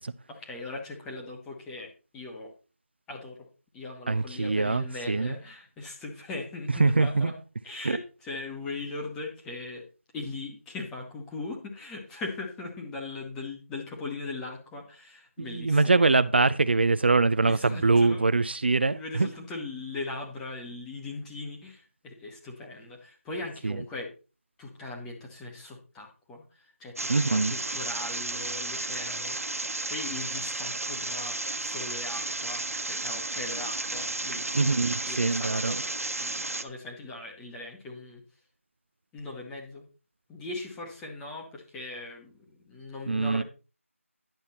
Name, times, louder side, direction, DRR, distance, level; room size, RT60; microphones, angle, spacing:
voice 1, 0.3-2.5 3.1-3.5 3.7-7.4 7.6-9.8 10.1-16.1 17.5-18.2 18.9-24.1 24.6-34.7 35.1-35.9 36.2-38.2 39.1-39.8 40.3-43.4, left 3 dB, 5° left, 1.1 m, -39 dB
voice 2, 4.1-5.3 6.8-7.3 7.8-8.0 15.4-19.3 23.6-23.8 27.1-27.5 34.5-35.8 43.1-43.4, right 3 dB, 45° right, 0.5 m, -23 dB
sound 1, 27.0-36.6, right 2 dB, 80° right, 1.3 m, -33 dB
10.5 x 7.3 x 4.2 m
figure-of-eight pair, 170°, 8 cm